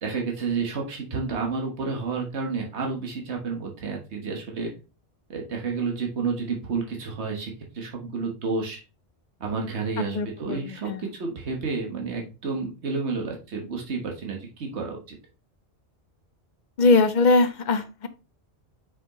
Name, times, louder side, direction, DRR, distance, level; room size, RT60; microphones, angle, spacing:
voice 1, 0.0-4.7 5.3-8.8 9.4-15.0, right 4 dB, 85° right, 1 dB, 1.5 m, -30 dB
voice 2, 10.1-11.0 16.8-18.1, left 3 dB, 50° left, 11 dB, 0.7 m, -21 dB
6.1 x 5.1 x 3.0 m, 0.30 s
omnidirectional pair, 1.1 m